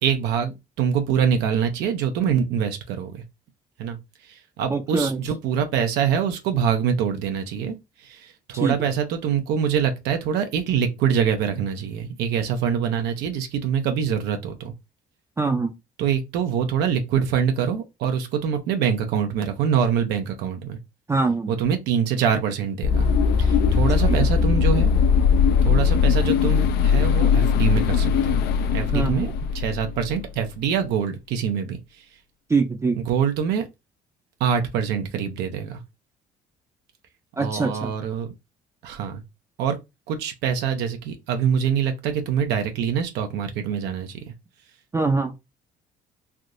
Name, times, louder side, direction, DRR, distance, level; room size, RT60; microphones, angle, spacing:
voice 1, 0.0-3.2 3.8-4.0 4.2-14.7 16.0-20.8 21.5-23.1 23.4-24.9 25.6-28.4 28.7-32.0 33.1-33.7 34.4-35.8 37.4-38.3 38.8-39.2 39.6-39.8 40.1-44.2, right 7 dB, 85° right, 0.6 m, -24 dB
voice 2, 4.7-5.2 8.5-8.9 15.4-15.8 21.1-21.5 24.1-24.3 28.9-29.3 32.5-33.0 37.4-37.9 44.9-45.3, right 4 dB, 15° right, 0.4 m, -23 dB
sound 1, 22.8-30.2, left 6 dB, 70° left, 0.4 m, -20 dB
3.4 x 2.7 x 2.5 m
cardioid pair, 110°, 17 cm